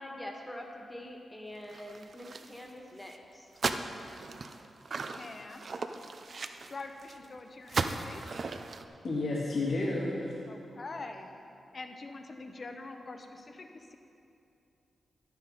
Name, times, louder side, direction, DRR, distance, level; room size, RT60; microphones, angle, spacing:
voice 1, 0.0-3.5, left 1 dB, 15° left, 1 dB, 1.5 m, -44 dB
sound 1, 1.7-2.7 3.0-3.2 3.6-7.3 7.7-8.9, right 4 dB, 55° right, 0.5 m, -37 dB
voice 2, 5.0-5.7 6.7-8.2 10.5-11.4 11.7-14.0, left 3 dB, 45° left, 5 dB, 0.8 m, -44 dB
voice 3, 9.0-10.3, left 2 dB, 65° left, -5 dB, 2.0 m, -31 dB
11.0 x 9.9 x 4.1 m, 2.6 s
cardioid pair, 75°, 0 cm